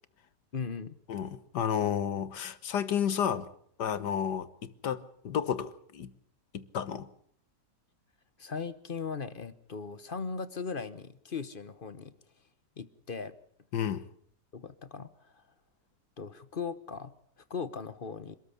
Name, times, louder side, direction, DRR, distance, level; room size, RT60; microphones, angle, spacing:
voice 1, 0.5-1.0 8.4-12.1 12.8-13.3 14.5-15.4 16.2-17.1 17.5-18.4, left 5 dB, 35° left, 1.0 m, -38 dB
voice 2, 1.1-3.5 3.8-6.1 6.5-7.1 13.7-14.1, left 8 dB, 80° left, 1.8 m, -31 dB
26.0 x 13.5 x 8.5 m
omnidirectional pair, 1.8 m